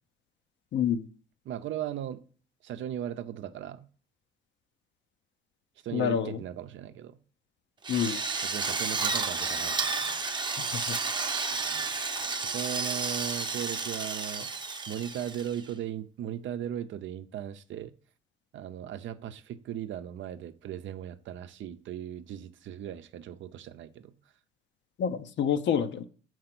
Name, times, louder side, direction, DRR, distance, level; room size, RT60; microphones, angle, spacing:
voice 1, 0.7-1.0 5.9-6.4 7.9-8.2 10.6-11.0 25.0-26.0, left 8 dB, 65° left, 0.7 m, -28 dB
voice 2, 1.4-2.2 2.6-3.9 5.8-7.2 8.4-9.9 12.5-14.5 14.9-17.9 18.5-24.2, right 10 dB, 70° right, 0.6 m, -37 dB
Drill, 7.8-15.7, right 4 dB, 20° right, 0.7 m, -31 dB
6.7 x 4.7 x 6.0 m
cardioid pair, 90°, 20 cm